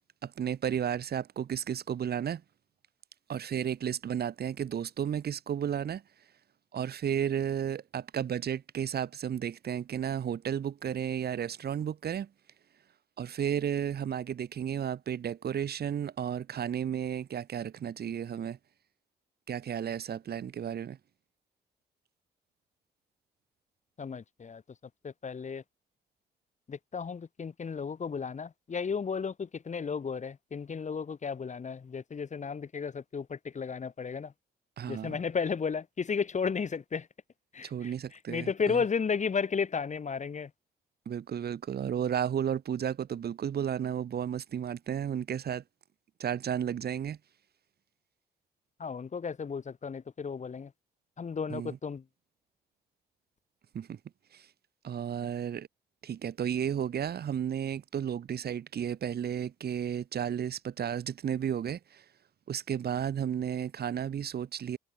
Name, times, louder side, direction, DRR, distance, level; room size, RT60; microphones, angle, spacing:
voice 1, 0.2-2.4 3.3-6.0 6.7-12.3 13.2-18.6 19.5-21.0 34.8-35.2 37.6-38.8 41.1-45.6 46.2-47.2 51.5-51.8 53.7-54.0 54.3-54.5 54.8-55.7 56.0-62.0 62.5-64.8, right 9 dB, 60° right, 1.8 m, -33 dB
voice 2, 24.0-24.6 25.0-25.6 26.7-34.3 34.9-37.1 37.5-40.5 48.8-50.7 51.2-52.0, left 6 dB, 40° left, 1.4 m, -33 dB
supercardioid pair, 55°, 18 cm